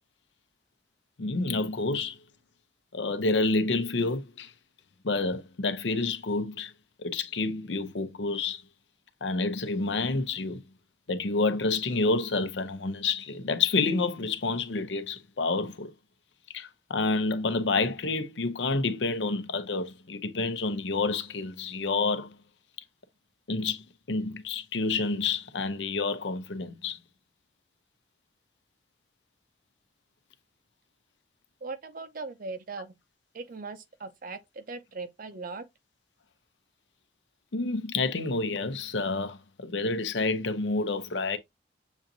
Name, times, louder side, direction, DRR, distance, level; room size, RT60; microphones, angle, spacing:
voice 1, 1.2-2.2 2.9-4.5 5.0-6.7 7.0-8.6 9.2-10.6 11.1-15.9 16.5-22.4 23.5-27.0 37.5-41.4, left 3 dB, 85° left, 0.7 m, -29 dB
voice 2, 31.6-33.0 33.3-35.6, right 3 dB, 50° right, 0.6 m, -39 dB
7.0 x 2.7 x 2.6 m
head